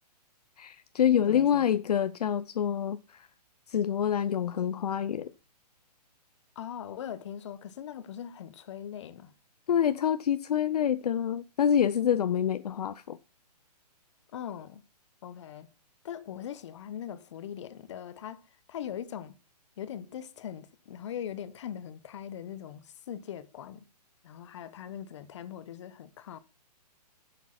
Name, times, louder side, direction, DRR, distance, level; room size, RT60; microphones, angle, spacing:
voice 1, 0.6-3.3 3.7-5.3 9.7-13.2, left 9 dB, 65° left, 0.6 m, -27 dB
voice 2, 1.3-1.7 6.5-9.3 14.3-14.8 15.2-15.7 16.0-18.4 18.7-19.3 19.8-23.8 24.2-26.4, left 9 dB, 45° left, 1.1 m, -41 dB
12.0 x 7.3 x 5.8 m
hypercardioid pair, 155°, 21 cm